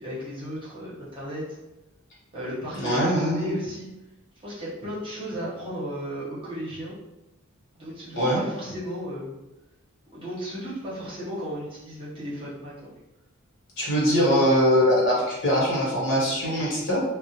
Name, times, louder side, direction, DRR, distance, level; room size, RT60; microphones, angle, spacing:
voice 1, 0.0-1.4 2.3-3.9 4.4-7.0 7.7-9.3 10.1-12.9, equal, 25° right, -9 dB, 0.8 m, -35 dB
voice 2, 2.7-3.6 8.1-8.4 13.8-17.0, equal, 60° left, -6 dB, 1.0 m, -22 dB
2.3 x 2.1 x 2.7 m, 1.0 s
head